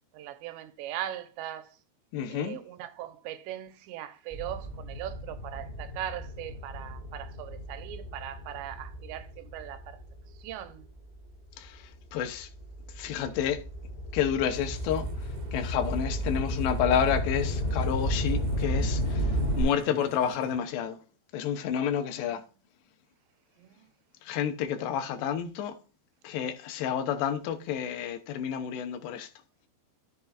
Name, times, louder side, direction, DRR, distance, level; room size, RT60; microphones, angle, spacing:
voice 1, 0.1-1.8 2.3-10.0 10.3-10.9 22.3-22.4 23.6-23.9, right 12 dB, 85° right, 3.0 m, -40 dB
voice 2, 2.1-2.6 11.6-11.8 12.1-12.5 13.0-13.6 14.1-15.1 15.5-19.3 19.6-21.0 21.3-22.4 24.3-25.7 26.2-29.3, left 8 dB, 80° left, 2.9 m, -29 dB
sound 1, 4.3-11.0 11.6-19.6, equal, 5° right, 3.4 m, -33 dB
sound 2, 14.5-20.6, right 9 dB, 60° right, 3.2 m, -49 dB
13.5 x 6.8 x 2.4 m
omnidirectional pair, 5.0 m